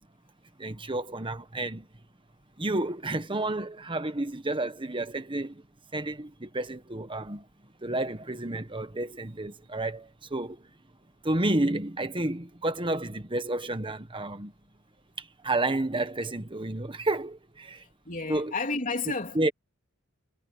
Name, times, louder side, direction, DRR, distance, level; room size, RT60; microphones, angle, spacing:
voice 1, 0.6-1.9 2.6-5.6 5.9-7.4 7.8-10.6 11.2-14.5 15.2-17.8 18.3-18.5 19.3-19.5, right 2 dB, 20° right, 1.4 m, -30 dB
voice 2, 18.0-19.5, left 3 dB, 35° left, 3.4 m, -31 dB
head